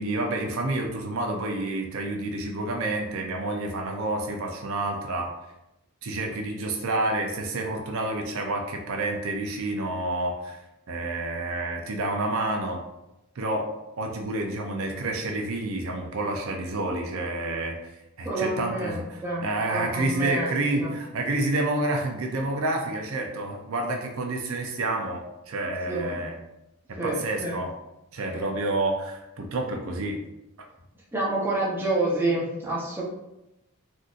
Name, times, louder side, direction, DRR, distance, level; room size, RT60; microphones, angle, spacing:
voice 1, 0.0-5.3 6.0-10.6 10.9-12.8 13.4-13.7 14.0-17.8 18.2-26.4 26.9-27.7 28.1-30.2, right 2 dB, 65° right, 2 dB, 0.5 m, -29 dB
voice 2, 18.2-19.4 19.7-20.9 25.9-26.2 27.0-27.6 31.1-33.0, right 2 dB, 10° right, -5 dB, 0.7 m, -28 dB
3.7 x 2.6 x 2.4 m, 0.91 s
head